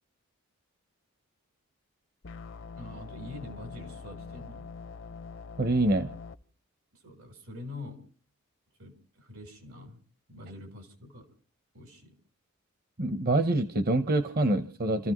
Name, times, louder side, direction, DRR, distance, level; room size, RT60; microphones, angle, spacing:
sound 1, 2.2-6.4, left 5 dB, 60° left, 0.7 m, -44 dB
voice 1, 2.8-4.7 6.9-8.1 8.8-10.0 10.3-11.4 11.7-12.2, left 2 dB, 80° right, 4.1 m, -45 dB
voice 2, 5.6-6.1 13.0-15.1, right 1 dB, 45° right, 0.9 m, -26 dB
29.0 x 14.5 x 3.1 m
head